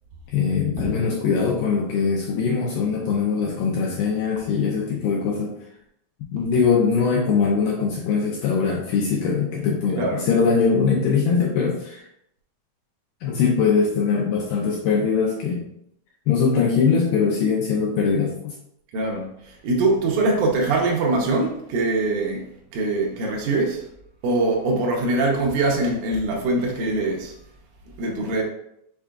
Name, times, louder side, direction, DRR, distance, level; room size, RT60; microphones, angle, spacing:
voice 1, 0.3-5.5 6.3-12.1 13.2-15.6 16.3-18.5, left 5 dB, 85° left, -2 dB, 1.9 m, -21 dB
voice 2, 18.9-22.5 22.7-23.8 24.2-27.3 28.0-28.4, right 2 dB, 80° right, -1 dB, 1.8 m, -23 dB
5.8 x 3.5 x 2.3 m, 0.76 s
omnidirectional pair, 4.4 m